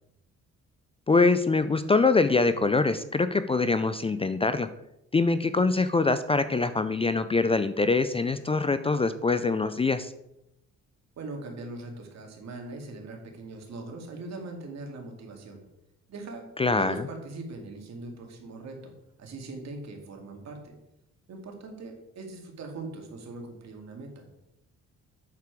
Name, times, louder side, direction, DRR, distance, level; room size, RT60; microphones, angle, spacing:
voice 1, 1.1-4.7 5.1-10.1 16.6-17.1, left 3 dB, 20° left, 12 dB, 0.4 m, -24 dB
voice 2, 11.2-15.6 16.1-16.5 16.8-18.9 19.2-20.7 21.3-24.3, right 2 dB, 60° right, 2 dB, 2.2 m, -41 dB
8.2 x 6.7 x 4.7 m, 0.86 s
cardioid pair, 90°, 30 cm